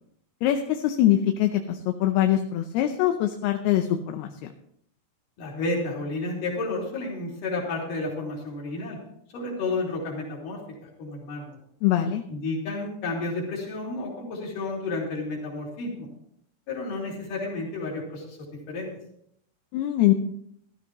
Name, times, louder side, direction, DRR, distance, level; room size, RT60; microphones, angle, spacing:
voice 1, 0.4-4.5 11.8-12.2 19.7-20.1, left 12 dB, 80° left, 6 dB, 2.6 m, -23 dB
voice 2, 5.4-9.0 9.3-11.6 12.3-16.1 16.7-18.4 18.7-18.9, left 2 dB, 55° left, -3 dB, 4.6 m, -31 dB
15.5 x 13.0 x 3.1 m, 0.70 s
omnidirectional pair, 4.7 m